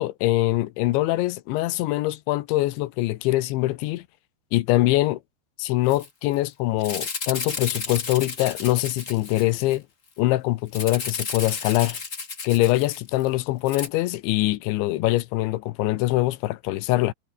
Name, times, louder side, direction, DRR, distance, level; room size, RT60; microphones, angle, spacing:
voice 1, 0.0-4.0 4.5-5.2 5.6-9.8 10.2-12.0 12.4-17.1, left 17 dB, 80° left, 3.1 m, -23 dB
Rattle (instrument), 5.9-6.1 6.3-6.4 6.8-9.8 10.7-13.3 13.7-13.9, left 4 dB, 45° left, 1.0 m, -33 dB
omnidirectional pair, 5.5 m